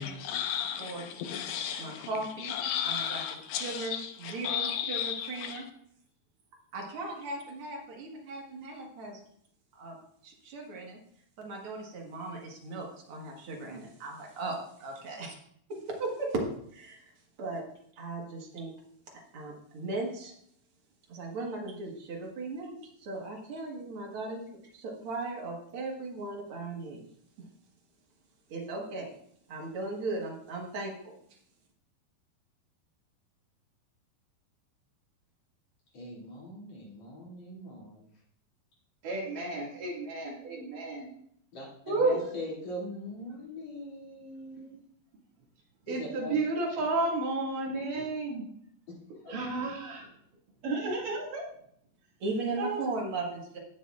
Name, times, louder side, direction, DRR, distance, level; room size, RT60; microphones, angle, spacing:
voice 1, 0.0-2.1 2.4-5.6, left 9 dB, 85° left, 2.5 m, -34 dB
voice 2, 0.8-1.4 1.8-2.5 2.8-3.2 3.6-5.6 6.7-9.2 9.7-10.0 10.2-11.0 11.4-15.4 15.7-16.5 16.7-17.1 17.4-17.6 18.0-18.7 19.3-20.3 21.1-27.0 28.5-29.1 29.5-31.1 52.2-53.6, right 2 dB, 50° right, 1.9 m, -37 dB
voice 3, 35.9-38.0 41.5-44.8 45.9-46.3 48.9-49.0 49.2-49.4, left 1 dB, 50° left, 3.8 m, -41 dB
voice 4, 39.0-41.1 41.9-42.2 45.9-48.4 49.3-50.0 50.6-51.4 52.6-52.8, right 3 dB, 65° right, 3.7 m, -31 dB
16.5 x 7.1 x 2.5 m
omnidirectional pair, 4.1 m